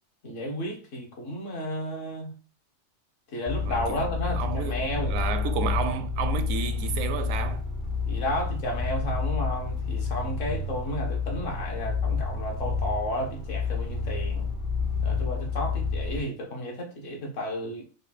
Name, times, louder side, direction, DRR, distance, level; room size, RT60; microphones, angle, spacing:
voice 1, 0.2-2.3 3.3-5.2 8.1-14.5 15.0-17.8, equal, 65° left, 1.5 m, -32 dB
sound 1, 3.5-16.2, left 5 dB, 45° left, 0.8 m, -29 dB
voice 2, 3.6-4.8 5.1-7.6, right 7 dB, 85° right, 1.0 m, -31 dB
4.9 x 2.3 x 4.2 m
omnidirectional pair, 1.4 m